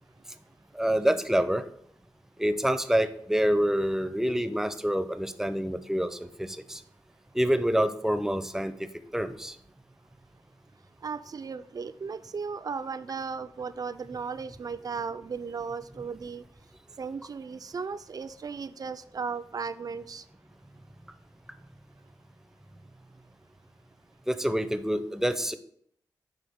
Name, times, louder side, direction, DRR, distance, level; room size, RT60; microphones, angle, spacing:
voice 1, 0.7-1.6 2.4-6.8 7.3-9.6 24.3-25.6, equal, 5° right, 10 dB, 0.5 m, -27 dB
voice 2, 11.0-16.4 17.0-20.2, right 5 dB, 55° right, 13 dB, 0.4 m, -36 dB
9.3 x 3.5 x 3.5 m, 0.66 s
cardioid pair, 60°, 8 cm